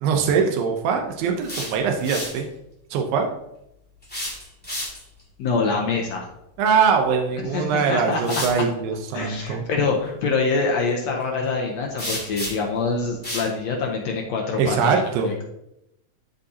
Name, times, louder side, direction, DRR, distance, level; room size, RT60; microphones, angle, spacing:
voice 1, 0.0-2.5 2.9-3.3 6.6-9.6 14.6-15.3, right 6 dB, 85° right, 3 dB, 2.7 m, -22 dB
sound 1, 1.2-2.4 4.0-5.2 7.3-7.4 8.2-8.6 12.0-12.8 13.2-13.5, left 1 dB, 5° left, 1.7 m, -31 dB
voice 2, 5.4-6.3 7.5-8.4 9.1-15.4, left 4 dB, 75° left, 0 dB, 1.6 m, -25 dB
12.5 x 5.2 x 2.8 m, 0.82 s
omnidirectional pair, 4.0 m